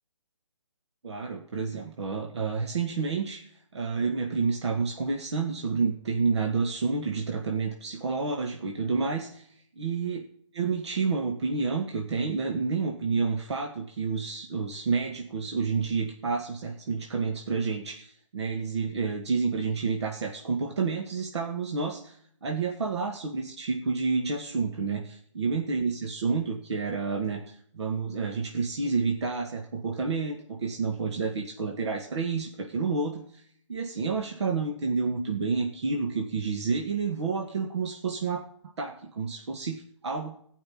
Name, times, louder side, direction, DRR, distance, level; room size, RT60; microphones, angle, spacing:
voice 1, 1.0-3.4 3.7-9.5 9.8-10.2 10.5-22.2 22.4-33.4 33.7-38.4 38.8-40.4, right 4 dB, 60° right, 1 dB, 2.0 m, -29 dB
17.0 x 5.8 x 8.8 m, 0.64 s
hypercardioid pair, 155°, 16 cm